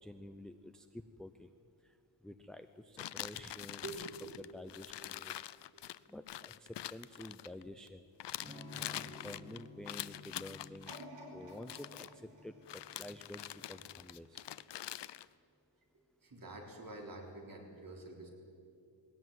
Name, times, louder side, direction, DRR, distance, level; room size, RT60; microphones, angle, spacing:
voice 1, 0.0-1.5 1.8-2.0 2.2-4.0 4.4-5.4 6.1-8.0 8.7-11.0 11.3-14.5, left 1 dB, ahead, 8 dB, 0.5 m, -50 dB
sound 1, 3.0-7.9 8.2-11.0 11.6-12.1 12.7-15.3, left 12 dB, 75° left, 0.6 m, -45 dB
voice 2, 3.8-4.4 9.0-9.3 10.4-10.6 16.2-18.3, right 2 dB, 50° right, 1 dB, 3.9 m, -47 dB
Electric guitar / Strum, 8.4-14.1, left 2 dB, 20° right, 3.4 m, -55 dB
sound 2, 10.9-13.9 14.5-14.6, right 1 dB, 85° right, 4.5 m, -54 dB
20.5 x 17.0 x 9.3 m, 2.5 s
wide cardioid pair, 160°, 42 cm